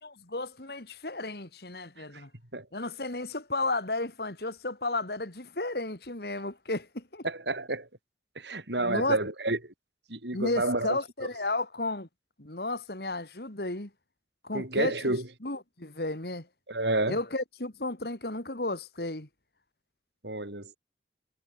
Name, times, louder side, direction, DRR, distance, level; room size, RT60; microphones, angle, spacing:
voice 1, 0.0-2.3 2.7-7.2 8.8-9.2 10.3-12.1 12.4-13.9 14.4-15.2 15.4-16.5 17.1-19.3, left 2 dB, 60° left, 2.5 m, -33 dB
voice 2, 7.2-7.9 8.4-9.7 10.1-11.0 14.5-15.3 16.7-17.2 20.2-20.8, right 2 dB, 75° right, 6.2 m, -30 dB
head